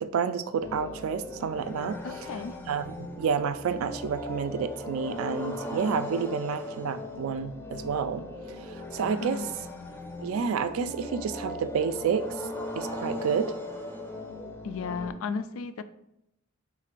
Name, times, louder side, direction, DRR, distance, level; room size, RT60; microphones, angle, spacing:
voice 1, 0.0-2.0 2.7-8.2 8.9-9.4 10.2-12.3 12.8-13.5, right 6 dB, 75° right, 11 dB, 0.3 m, -29 dB
sound 1, 0.6-15.1, left 1 dB, 10° left, 0.5 m, -38 dB
voice 2, 2.0-2.6 9.2-9.5 14.6-15.8, left 5 dB, 70° left, 11 dB, 0.3 m, -34 dB
3.7 x 2.5 x 4.4 m, 0.81 s
head